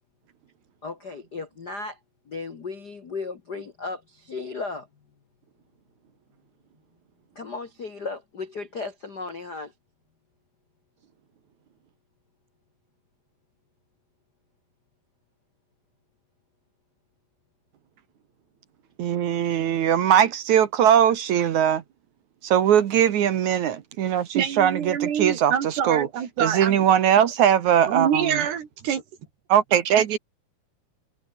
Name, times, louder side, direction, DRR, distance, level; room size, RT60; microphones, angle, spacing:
voice 1, 0.8-2.0 2.3-4.9 7.3-9.7, left 4 dB, 60° left, 1.0 m, -35 dB
voice 2, 19.0-21.8 22.4-26.1 26.4-28.4 29.5-30.2, right 9 dB, 60° right, 2.2 m, -20 dB
voice 3, 24.4-26.8 27.9-29.0, right 8 dB, 90° right, 5.2 m, -26 dB
omnidirectional pair, 4.6 m